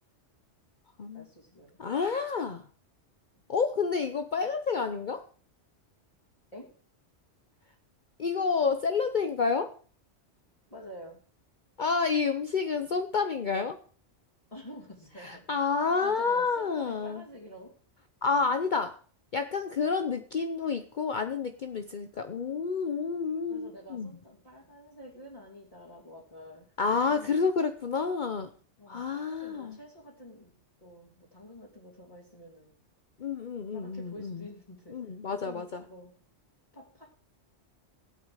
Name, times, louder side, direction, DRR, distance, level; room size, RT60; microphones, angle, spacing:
voice 1, 1.1-1.8 6.5-6.7 10.7-11.2 14.5-15.7 16.0-17.7 23.5-27.5 28.8-30.5 30.8-32.8 33.7-35.0 35.3-36.2 36.7-37.0, left 1 dB, 30° left, -6 dB, 3.1 m, -48 dB
voice 2, 1.8-2.6 3.5-5.3 8.2-9.7 11.8-13.8 15.2-17.2 18.2-19.0 19.3-24.1 26.8-28.5 28.9-29.8 33.2-34.5 34.9-35.8, left 5 dB, 45° left, 8 dB, 0.9 m, -29 dB
16.5 x 8.5 x 4.9 m, 0.43 s
omnidirectional pair, 1.2 m